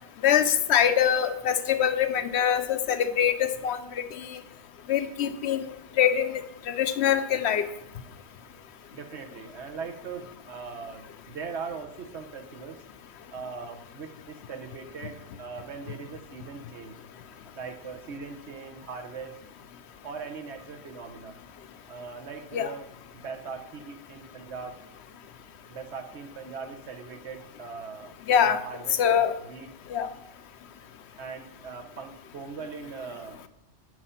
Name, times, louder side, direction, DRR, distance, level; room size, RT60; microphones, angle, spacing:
voice 1, 0.2-4.4 4.9-5.7 6.0-6.4 6.8-7.6 22.5-22.7 28.3-28.6 29.0-29.3 29.9-30.1, left 9 dB, 70° left, 10 dB, 0.9 m, -24 dB
voice 2, 8.9-12.8 13.3-16.9 17.5-19.4 20.0-21.3 21.9-24.8 25.7-28.1 28.4-29.7 31.2-33.5, right 5 dB, 70° right, 6 dB, 1.3 m, -40 dB
9.4 x 5.0 x 5.7 m, 0.81 s
omnidirectional pair, 1.2 m